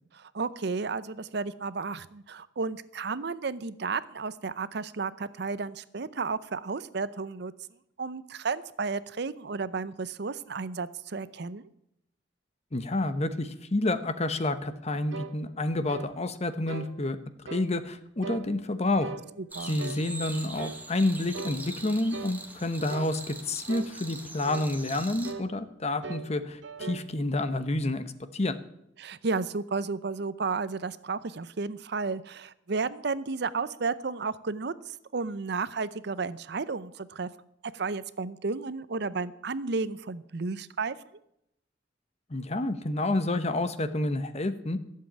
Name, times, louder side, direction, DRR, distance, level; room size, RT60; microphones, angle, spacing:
voice 1, 0.1-7.5 8.0-11.7 19.4-19.8 29.0-37.3 37.6-41.0, right 4 dB, 65° right, 16 dB, 0.7 m, -33 dB
voice 2, 12.7-17.2 17.5-19.1 19.6-28.0 28.3-28.6 42.3-44.8, left 2 dB, 35° left, 11 dB, 1.0 m, -29 dB
sound 1, 15.1-15.4 15.9-16.1 16.7-16.9 17.5-17.7 18.2-18.5 19.0-19.3 19.8-20.0 20.6-20.8 21.3-21.6 22.1-22.4 22.9-23.1 23.7-23.9 24.4-24.7 25.2-25.5 26.0-26.3 26.6-27.1, right 4 dB, 85° right, 1.0 m, -39 dB
sound 2, 19.5-25.3, right 2 dB, 10° right, 1.4 m, -42 dB
15.0 x 7.6 x 8.7 m, 0.78 s
head